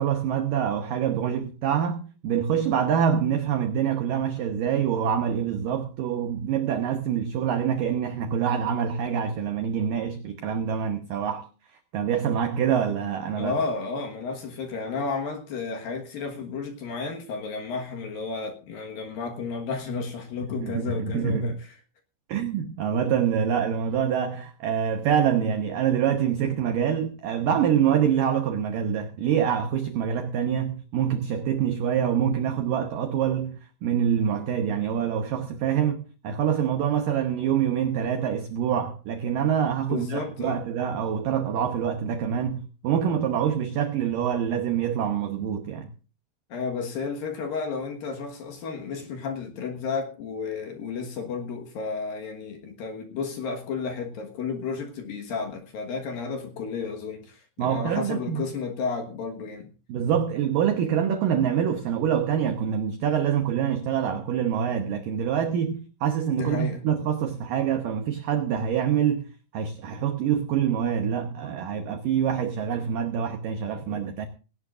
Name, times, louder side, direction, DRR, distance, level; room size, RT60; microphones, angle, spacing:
voice 1, 0.0-11.5 11.9-13.5 20.4-21.5 22.3-45.9 57.6-58.4 59.9-69.3 69.5-74.3, right 8 dB, 90° right, 1.9 m, -25 dB
voice 2, 13.4-21.7 39.9-40.6 46.5-59.7 66.3-66.8, left 4 dB, 60° left, 2.6 m, -32 dB
19.0 x 17.5 x 2.5 m
omnidirectional pair, 5.6 m